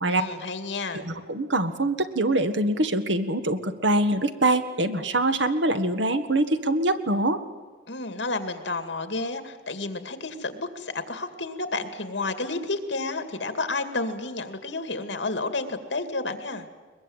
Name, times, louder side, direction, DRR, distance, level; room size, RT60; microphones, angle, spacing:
voice 1, 0.1-1.1 7.9-16.7, left 3 dB, 85° left, 9 dB, 2.3 m, -31 dB
voice 2, 0.9-7.4, right 2 dB, 90° right, 9 dB, 1.7 m, -24 dB
22.0 x 21.5 x 8.9 m, 1.4 s
head